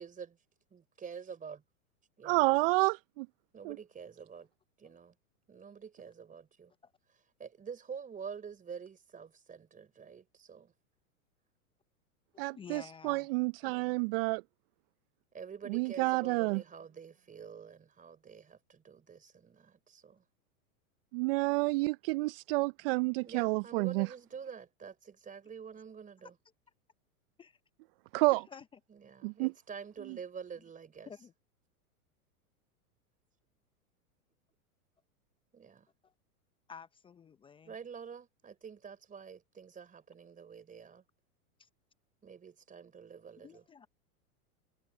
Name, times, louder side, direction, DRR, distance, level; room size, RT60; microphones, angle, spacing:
voice 1, 0.7-1.6 2.2-2.6 3.5-4.5 4.8-5.1 5.5-6.7 7.4-10.7 13.6-14.1 15.3-20.2 23.2-26.3 28.9-31.1 35.5-35.9 37.6-41.0 42.2-43.6, right 6 dB, 15° right, 4.5 m, -47 dB
voice 2, 2.2-3.3 3.6-3.8 12.4-14.4 15.7-16.6 21.1-24.1 28.1-28.4 29.2-29.5, right 25 dB, 40° right, 0.6 m, -29 dB
voice 3, 12.5-13.3 13.6-14.0 27.4-27.6 28.3-28.7 31.1-31.3 36.0-36.1 36.7-37.7 41.6-41.7 43.4-43.9, left 6 dB, 10° left, 0.6 m, -51 dB
hypercardioid pair, 115°, 45 cm